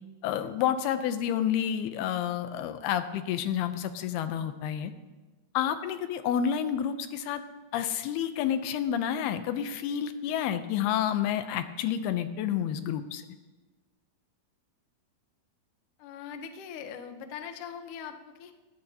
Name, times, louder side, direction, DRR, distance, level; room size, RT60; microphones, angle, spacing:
voice 1, 0.2-4.9 5.5-7.4 7.7-13.2, left 9 dB, 85° left, 9 dB, 2.7 m, -29 dB
voice 2, 16.0-18.5, left 7 dB, 70° left, 6 dB, 2.2 m, -41 dB
19.5 x 16.5 x 2.8 m, 1.2 s
omnidirectional pair, 4.5 m